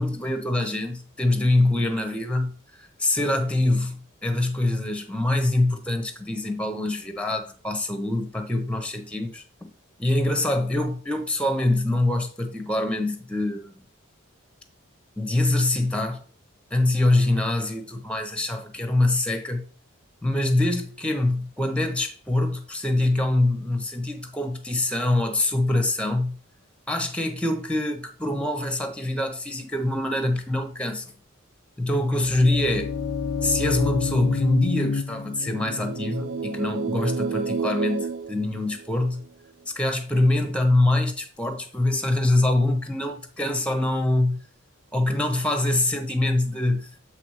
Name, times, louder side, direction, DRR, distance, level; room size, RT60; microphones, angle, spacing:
voice 1, 0.0-2.5 2.8-9.7 10.0-13.7 15.2-16.2 16.7-19.7 20.2-26.4 26.9-31.1 31.8-32.9 33.4-39.2 39.7-44.4 44.9-47.0, left 2 dB, 5° left, 0.9 m, -24 dB
sound 1, 32.0-37.8, left 5 dB, 70° left, 0.5 m, -30 dB
sound 2, 35.4-39.3, right 5 dB, 65° right, 0.3 m, -30 dB
7.8 x 3.3 x 4.8 m
head